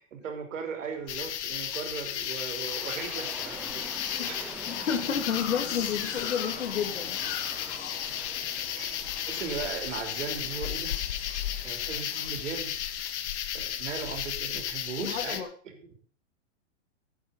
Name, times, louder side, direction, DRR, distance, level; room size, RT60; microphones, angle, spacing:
voice 1, 0.2-4.5 8.7-8.9 9.3-11.0 11.6-12.7 13.5-16.0, right 6 dB, 80° right, 4 dB, 3.9 m, -38 dB
sound 1, 1.1-15.4, left 10 dB, 65° left, 1.3 m, -34 dB
sound 2, 1.1-1.8 2.3-2.7 3.1-3.2 3.5-3.6 3.9-8.7 9.0-9.5 9.8-10.1 10.4-11.4 11.9-12.3, left 8 dB, 30° left, 1.6 m, -43 dB
sound 3, 2.2-13.1, right 2 dB, 5° right, 0.7 m, -46 dB
voice 2, 4.7-7.2 7.6-7.7 15.0-15.5, left 7 dB, 85° left, 5 dB, 2.6 m, -31 dB
12.5 x 8.6 x 5.4 m, 0.43 s
hypercardioid pair, 145°, 37 cm